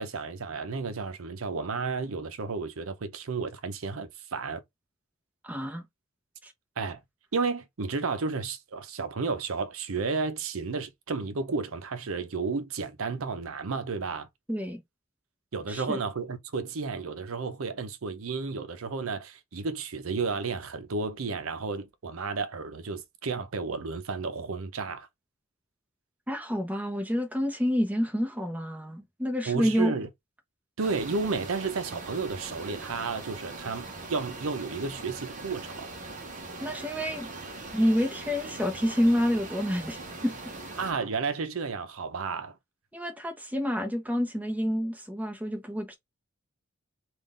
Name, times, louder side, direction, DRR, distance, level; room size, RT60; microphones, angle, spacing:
voice 1, 0.0-4.6 6.8-7.0 7.3-14.3 15.5-25.1 29.5-30.1 30.8-35.9 40.8-42.6, right 4 dB, 80° right, 0.6 m, -32 dB
voice 2, 5.4-5.8 6.4-6.5 14.5-14.8 15.7-16.0 26.3-29.9 36.6-37.3 37.7-40.3 42.9-46.0, equal, 5° right, 0.8 m, -28 dB
sound 1, 30.8-40.9, right 2 dB, 35° right, 0.9 m, -41 dB
3.7 x 2.5 x 3.7 m
head